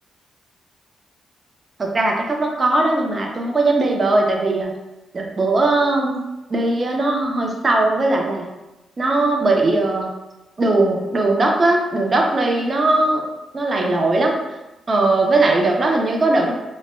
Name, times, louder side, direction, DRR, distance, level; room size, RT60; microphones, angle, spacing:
voice 1, 1.8-4.7 5.1-6.2 6.5-8.5 9.0-10.1 10.6-13.2 13.5-14.4 14.9-16.5, right 2 dB, 30° right, 0 dB, 0.4 m, -19 dB
2.0 x 2.0 x 3.0 m, 0.99 s
cardioid pair, 115°, 0 cm